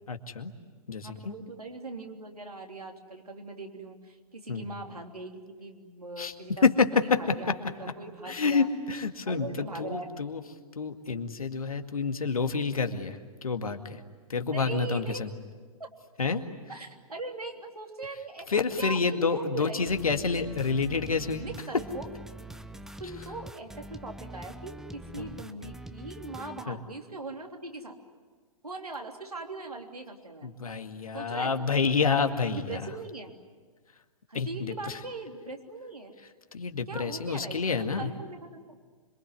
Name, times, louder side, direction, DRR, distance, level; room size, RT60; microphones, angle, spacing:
voice 1, 0.1-0.5 0.9-1.4 4.5-4.7 6.2-6.3 6.6-7.2 7.5-7.6 8.3-10.4 10.8-14.0 14.3-15.3 16.2-16.4 18.5-21.4 25.2-25.3 26.7-26.8 30.4-32.9 34.3-35.0 36.5-38.1, left 4 dB, 70° left, 7 dB, 2.1 m, -28 dB
voice 2, 1.0-6.7 7.0-8.7 9.3-10.1 14.3-15.2 15.8-15.9 16.7-18.5 18.8-20.3 21.4-22.0 23.0-28.0 28.6-30.5 31.1-31.5 32.5-33.3 34.3-36.1 36.9-38.8, right 3 dB, 80° right, 2 dB, 3.4 m, -40 dB
sound 1, 19.9-26.7, right 1 dB, ahead, 0.8 m, -44 dB
26.5 x 23.5 x 9.6 m, 1.5 s
figure-of-eight pair, 115°, 19 cm